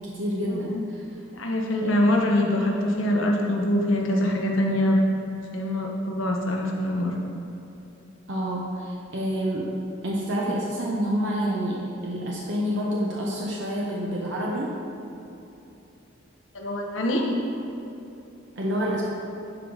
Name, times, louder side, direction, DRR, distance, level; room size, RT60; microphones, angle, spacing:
voice 1, 0.0-1.2 1.8-2.2 8.3-9.8 10.0-14.7 18.6-19.0, equal, 65° right, -4 dB, 0.9 m, -28 dB
voice 2, 1.3-5.0 5.5-7.2 16.5-17.2, left 1 dB, 90° left, 0 dB, 1.2 m, -24 dB
11.0 x 4.8 x 4.0 m, 2.9 s
head